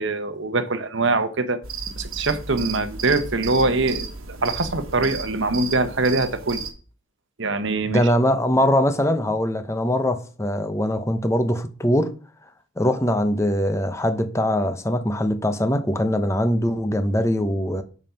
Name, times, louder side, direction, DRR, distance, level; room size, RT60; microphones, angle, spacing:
voice 1, 0.0-1.6 2.0-6.6 7.4-8.0, right 3 dB, 55° right, 1.0 m, -23 dB
sound 1, 1.6-6.7, right 4 dB, 75° right, 1.5 m, -33 dB
voice 2, 7.9-12.1 12.8-17.8, left 1 dB, 15° left, 0.8 m, -22 dB
8.1 x 5.4 x 5.7 m
head